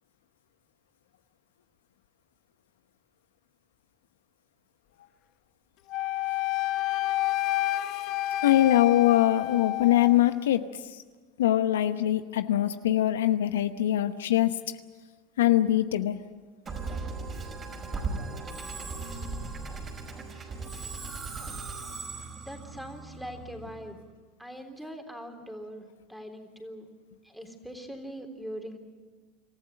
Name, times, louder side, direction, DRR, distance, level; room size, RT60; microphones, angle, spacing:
Wind instrument woodwind instrument, 5.9-10.2, left 16 dB, 55° left, 1.0 m, -29 dB
voice 1, 8.4-10.7 11.4-14.6 15.4-16.2, left 13 dB, 85° left, 10 dB, 0.9 m, -23 dB
Musical instrument, 16.7-24.0, right 3 dB, 30° right, 5.3 m, -37 dB
voice 2, 22.4-24.0 24.4-26.9 27.2-28.8, equal, ahead, 5 dB, 3.5 m, -42 dB
26.5 x 14.5 x 9.1 m, 1.4 s
hypercardioid pair, 90°, 0 cm